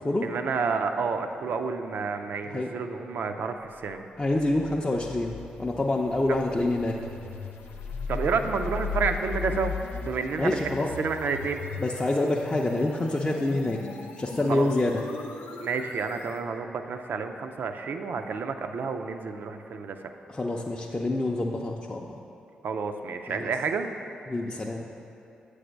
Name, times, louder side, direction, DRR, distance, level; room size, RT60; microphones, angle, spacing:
voice 1, 0.2-4.0 8.1-9.7 10.0-11.6 14.5-14.7 15.6-20.0 22.6-23.9, right 5 dB, 60° right, 7 dB, 0.4 m, -30 dB
voice 2, 4.2-7.0 10.3-10.9 11.8-13.8 14.2-15.0 20.3-22.2 23.3-23.5 24.3-24.9, left 2 dB, 25° left, -2 dB, 0.5 m, -27 dB
sound 1, 4.3-16.4, left 5 dB, 75° left, 0.5 m, -37 dB
7.8 x 3.4 x 5.1 m, 2.7 s
hypercardioid pair, 40°, 4 cm